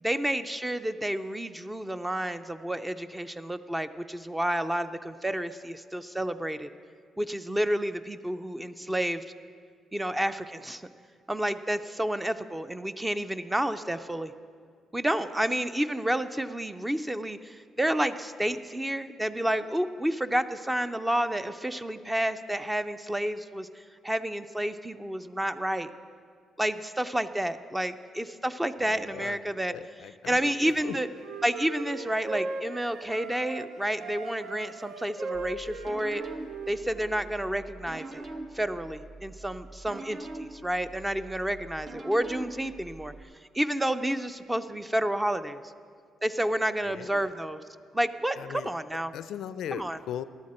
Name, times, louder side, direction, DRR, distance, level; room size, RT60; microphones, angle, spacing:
voice 1, 0.0-6.7 7.2-9.2 9.9-10.8 11.3-14.3 14.9-23.7 24.0-25.9 26.6-29.7 30.2-31.1 31.4-36.2 36.7-38.3 38.5-43.1 43.5-45.6 46.2-47.6 47.9-49.1 49.7-50.0, right 1 dB, 10° right, 11 dB, 0.5 m, -30 dB
voice 2, 28.8-31.0 46.8-47.3 48.4-48.7 49.1-50.2, left 10 dB, 80° left, 15 dB, 0.4 m, -39 dB
Wind instrument woodwind instrument, 30.8-33.7 34.0-37.3, right 3 dB, 75° right, 0.8 m, -38 dB
sound 1, 35.3-43.2, right 2 dB, 40° right, 0.9 m, -43 dB
15.0 x 11.5 x 4.3 m, 2.1 s
cardioid pair, 90°, 0 cm